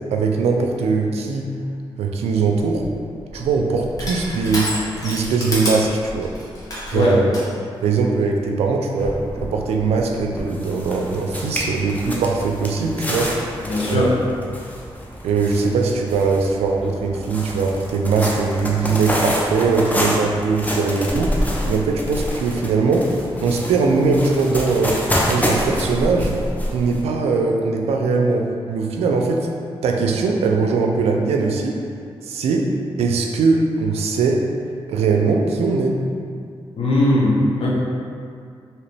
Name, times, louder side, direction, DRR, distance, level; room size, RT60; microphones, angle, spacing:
voice 1, 0.1-1.5 2.0-2.8 3.3-4.7 5.0-6.3 6.9-7.3 7.8-13.3 13.9-14.3 15.2-21.4 21.6-23.1 23.4-25.0 25.2-26.3 26.7-29.5 29.8-31.8 32.2-32.7 33.0-34.4 34.9-36.0, right 4 dB, 85° right, 2 dB, 0.4 m, -20 dB
Crushing, 2.6-7.5, equal, 35° left, 1.1 m, -30 dB
sound 1, 8.6-8.7 9.0-27.0, equal, 15° left, 0.7 m, -27 dB
voice 2, 13.6-14.1 36.8-37.7, left 1 dB, 70° left, -5 dB, 0.8 m, -19 dB
2.9 x 2.9 x 3.2 m, 2.3 s
cardioid pair, 55°, 10 cm